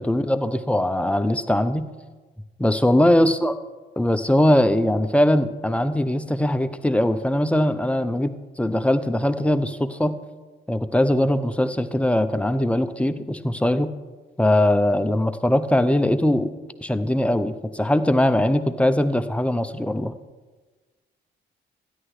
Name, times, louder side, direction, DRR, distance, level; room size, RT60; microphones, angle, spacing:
voice 1, 0.0-1.9 2.6-3.5 4.0-10.2 10.7-13.9 14.4-16.5 16.8-20.1, left 1 dB, 5° left, 10 dB, 0.5 m, -21 dB
13.0 x 10.0 x 3.2 m, 1.3 s
cardioid pair, 90°, 20 cm